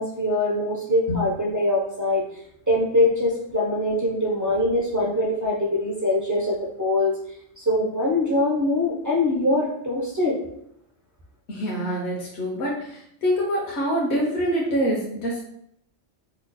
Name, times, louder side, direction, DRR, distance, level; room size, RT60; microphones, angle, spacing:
voice 1, 0.0-2.3 2.7-7.2 7.6-10.4, left 1 dB, 30° right, -3 dB, 0.3 m, -23 dB
voice 2, 11.5-15.4, equal, 75° left, -3 dB, 1.0 m, -25 dB
3.0 x 2.1 x 3.9 m, 0.72 s
omnidirectional pair, 1.2 m